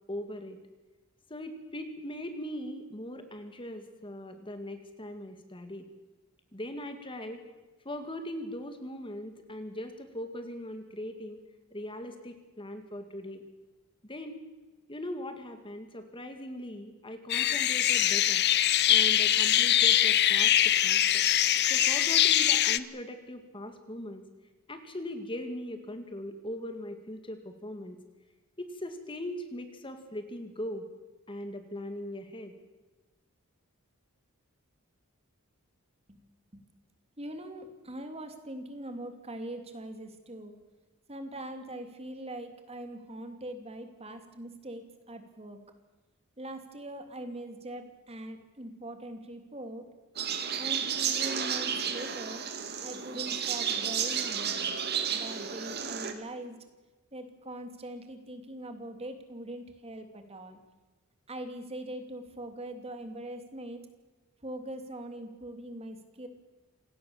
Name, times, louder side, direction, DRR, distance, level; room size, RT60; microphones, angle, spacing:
voice 1, 0.1-0.6 1.3-5.9 6.5-7.4 7.8-11.4 11.7-13.4 14.0-14.4 14.9-18.4 18.9-21.2 21.7-24.2 24.7-28.0 28.6-30.9 31.3-32.5, left 1 dB, 25° left, 7 dB, 2.1 m, -40 dB
sound 1, 17.3-22.8, left 11 dB, 50° left, 0.8 m, -23 dB
voice 2, 37.2-40.6 41.1-45.6 46.4-49.9 50.6-52.4 52.8-54.8 55.1-56.6 57.1-60.6 61.3-63.9 64.4-66.3, right 1 dB, 30° right, 6 dB, 2.7 m, -42 dB
sound 2, 50.2-56.1, right 7 dB, 50° right, 2.4 m, -32 dB
27.0 x 18.5 x 7.2 m, 1.2 s
head